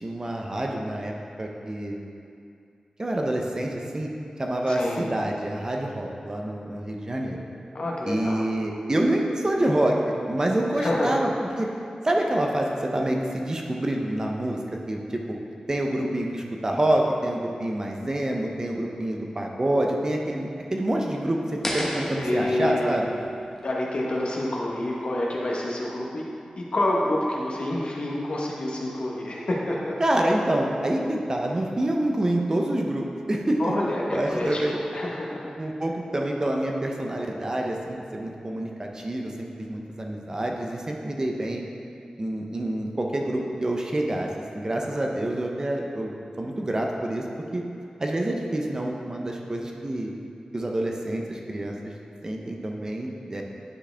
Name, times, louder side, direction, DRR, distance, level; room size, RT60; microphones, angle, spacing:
voice 1, 0.0-1.1 1.4-2.0 3.0-4.1 4.4-7.4 8.1-10.0 10.3-11.3 11.6-11.7 12.0-14.6 14.9-15.4 15.7-21.4 21.7-23.1 30.0-33.7 34.1-34.8 35.6-41.6 42.2-46.1 46.4-47.2 47.5-47.6 48.0-50.1 50.5-51.9 52.2-53.4, right 1 dB, 30° right, 0 dB, 0.7 m, -27 dB
voice 2, 4.7-5.0 7.7-8.5 10.7-11.2 22.2-23.1 23.6-26.2 26.6-30.0 33.6-34.6 34.9-35.5, left 1 dB, 55° left, -3 dB, 1.1 m, -28 dB
sound 1, 21.6-24.7, left 1 dB, 20° left, 0.9 m, -34 dB
10.0 x 4.7 x 3.4 m, 2.4 s
wide cardioid pair, 110°, 2 cm